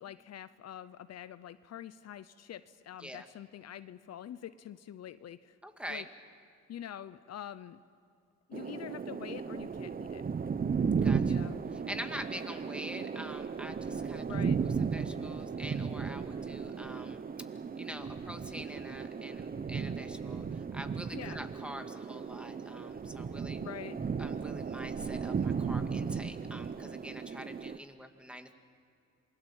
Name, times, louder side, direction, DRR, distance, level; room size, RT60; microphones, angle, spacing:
voice 1, 0.0-5.6 5.9-6.1 6.7-7.8 8.5-10.2 11.2-11.5 14.3-14.6 21.1-21.4 23.6-24.0, left 10 dB, 60° left, 13 dB, 0.7 m, -45 dB
voice 2, 5.6-6.0 11.0-11.4 11.9-14.3 14.8-17.5 17.8-23.6 24.2-28.5, equal, 5° right, 6 dB, 2.0 m, -45 dB
sound 1, 8.5-27.8, right 6 dB, 30° right, 0.8 m, -35 dB
27.5 x 21.0 x 7.3 m, 2.5 s
cardioid pair, 90°, 30 cm